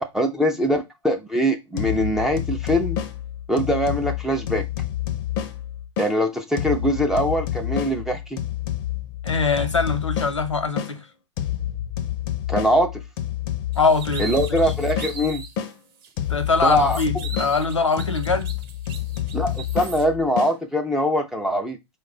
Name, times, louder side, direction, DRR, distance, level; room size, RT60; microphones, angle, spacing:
voice 1, 0.1-3.0 3.5-4.6 6.0-8.4 12.5-13.0 14.2-15.4 16.6-17.0 19.3-21.8, equal, 5° right, 0.4 m, -22 dB
sound 1, 1.8-6.1 6.6-10.9 11.4-15.7 16.2-20.5, left 11 dB, 45° left, 0.6 m, -29 dB
voice 2, 9.2-11.1 13.8-14.7 16.3-18.5, left 4 dB, 80° left, 0.9 m, -23 dB
sound 2, 13.7-15.6 16.0-16.1 16.5-20.0, right 6 dB, 50° right, 0.8 m, -39 dB
4.5 x 2.2 x 3.7 m
figure-of-eight pair, 100°, 15 cm